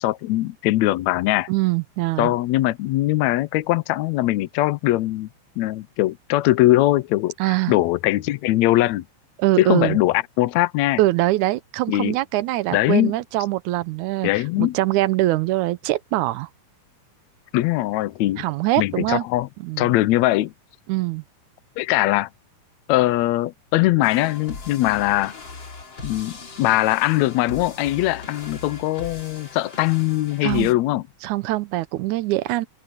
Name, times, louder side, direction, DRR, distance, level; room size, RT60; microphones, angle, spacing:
voice 1, 0.0-1.5 2.2-5.3 5.6-9.0 9.6-11.0 11.9-12.2 12.7-13.1 14.2-14.8 17.5-18.4 18.8-19.5 19.8-20.5 21.8-22.3 22.9-25.3 26.0-31.0, left 16 dB, 75° left, 1.8 m, -21 dB
voice 2, 1.5-2.3 7.4-7.7 9.4-10.0 11.0-14.3 14.6-16.5 18.4-19.3 19.6-19.9 20.9-21.2 30.4-30.7 31.2-32.7, right 17 dB, 80° right, 2.0 m, -23 dB
sound 1, 24.0-30.7, left 3 dB, 35° left, 3.3 m, -39 dB
open air
omnidirectional pair, 3.6 m